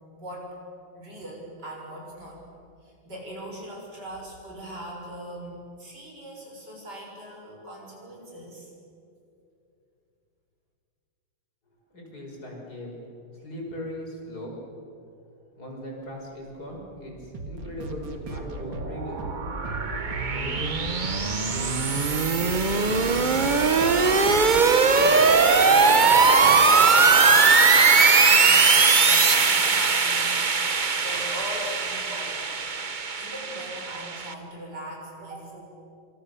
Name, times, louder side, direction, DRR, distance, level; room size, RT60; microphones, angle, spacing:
voice 1, 0.1-0.6 0.9-2.4 2.8-8.7 24.8-30.4 31.0-32.6 33.1-35.6, equal, 50° right, -1 dB, 7.3 m, -40 dB
voice 2, 11.9-13.0 13.3-14.5 15.6-19.2 20.2-23.5, left 1 dB, 45° left, -1 dB, 6.6 m, -39 dB
sound 1, 17.3-25.7, right 2 dB, 70° right, 2.6 m, -39 dB
sound 2, 18.3-34.3, right 4 dB, 30° right, 0.9 m, -20 dB
28.0 x 26.0 x 7.0 m, 2.6 s
omnidirectional pair, 2.2 m